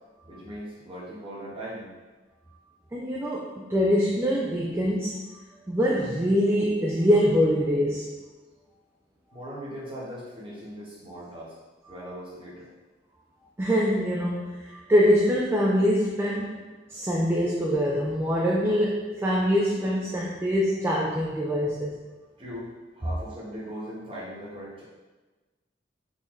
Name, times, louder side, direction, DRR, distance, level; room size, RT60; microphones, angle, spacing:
voice 1, 0.2-1.9 9.3-11.5 11.9-12.7 22.4-24.8, equal, 30° right, -7 dB, 1.0 m, -39 dB
voice 2, 2.9-5.2 5.7-8.2 13.6-16.6 16.9-22.0, equal, 15° right, -4 dB, 0.3 m, -24 dB
3.8 x 2.6 x 3.0 m, 1.2 s
head